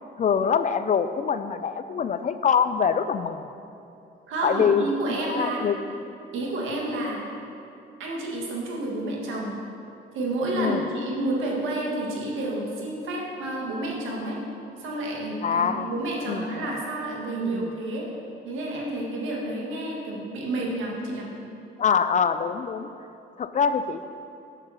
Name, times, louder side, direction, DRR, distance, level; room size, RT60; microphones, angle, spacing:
voice 1, 0.2-3.4 4.4-5.8 10.5-10.8 15.4-15.9 16.3-16.7 17.4-17.7 21.8-22.9 23.4-24.0, left 6 dB, 40° left, 11 dB, 0.4 m, -24 dB
voice 2, 4.3-5.6 6.3-7.2 8.0-9.5 10.1-14.4 14.8-18.1 18.5-21.3, right 2 dB, 85° right, -2 dB, 1.8 m, -30 dB
7.1 x 5.8 x 7.0 m, 2.7 s
cardioid pair, 90°, 20 cm